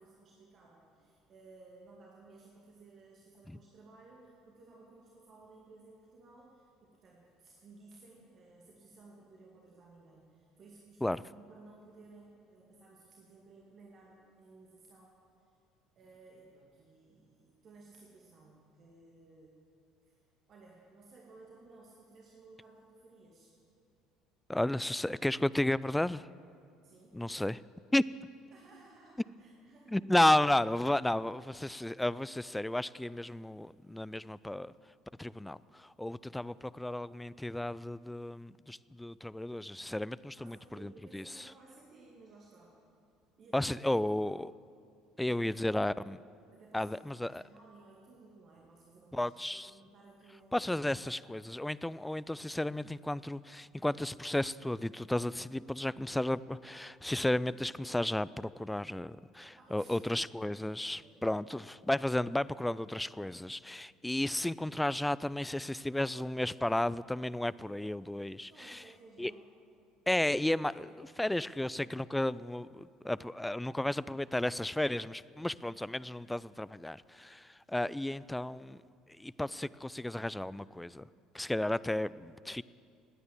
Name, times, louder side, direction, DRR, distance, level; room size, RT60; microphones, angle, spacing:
voice 1, 0.0-15.1 16.0-19.6 20.0-20.2 20.5-23.5 26.8-27.2 28.5-30.3 40.3-42.8 43.4-43.9 45.2-45.9 46.5-50.6 59.3-60.3 60.9-61.2 68.5-69.5, right 3 dB, 40° right, 2.2 m, -57 dB
voice 2, 24.5-26.3 27.1-27.6 27.9-28.0 29.9-34.7 35.2-41.4 43.5-44.5 45.2-46.2 46.7-47.4 49.1-49.7 50.5-68.8 69.2-69.3 70.1-78.8 79.2-81.1 81.3-82.6, left 1 dB, 5° left, 0.3 m, -33 dB
18.0 x 9.6 x 7.5 m
figure-of-eight pair, 60°, 0 cm